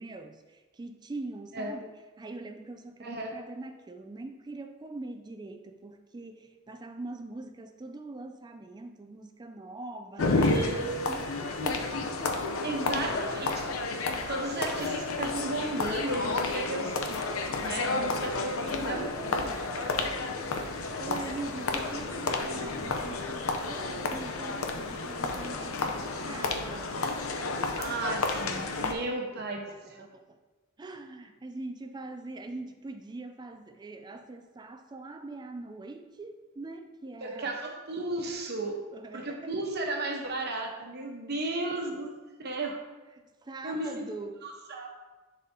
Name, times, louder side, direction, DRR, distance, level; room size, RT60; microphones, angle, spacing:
voice 1, 0.0-11.9 12.2-13.2 16.7-17.1 18.6-20.2 21.0-27.1 29.3-29.4 29.7-30.4 30.8-37.6 38.9-39.5 43.1-44.4, right 2 dB, 20° right, 7 dB, 0.4 m, -43 dB
voice 2, 3.0-3.4 10.4-11.2 11.6-12.1 12.6-13.7 14.3-17.2 17.4-19.1 19.8-19.9 27.8-30.1 37.2-38.8 39.1-42.1 42.4-42.8 43.6-44.0 44.4-44.9, right 2 dB, 50° right, 1 dB, 1.0 m, -34 dB
sound 1, 10.2-28.9, left 3 dB, 80° left, 0.7 m, -31 dB
11.0 x 4.1 x 2.8 m, 1.2 s
head